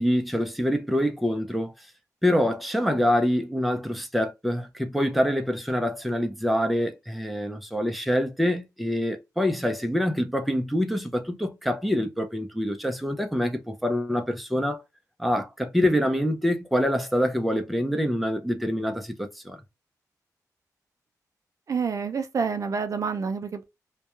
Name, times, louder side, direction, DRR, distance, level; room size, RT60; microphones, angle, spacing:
voice 1, 0.0-1.7 2.2-14.8 15.2-19.6, equal, ahead, 0.5 m, -25 dB
voice 2, 21.7-23.6, right 5 dB, 55° right, 0.4 m, -28 dB
2.2 x 2.2 x 2.9 m
cardioid pair, 85°, 7 cm